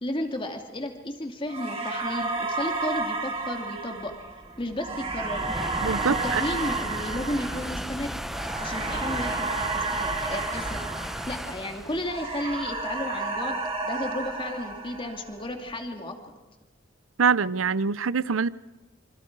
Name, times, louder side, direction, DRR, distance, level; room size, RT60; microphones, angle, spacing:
voice 1, 0.0-4.1 4.6-5.4 6.0-8.2 8.6-10.9 11.3-13.6 13.8-16.2, left 1 dB, 25° left, 4 dB, 2.6 m, -33 dB
sound 1, 1.5-11.7 12.0-15.4, right 3 dB, 30° right, 3.9 m, -32 dB
sound 2, 2.4-15.7, equal, ahead, 0.7 m, -36 dB
voice 2, 5.8-6.4 17.2-18.5, right 5 dB, 75° right, 18 dB, 0.7 m, -24 dB
27.5 x 25.5 x 4.8 m, 1.2 s
head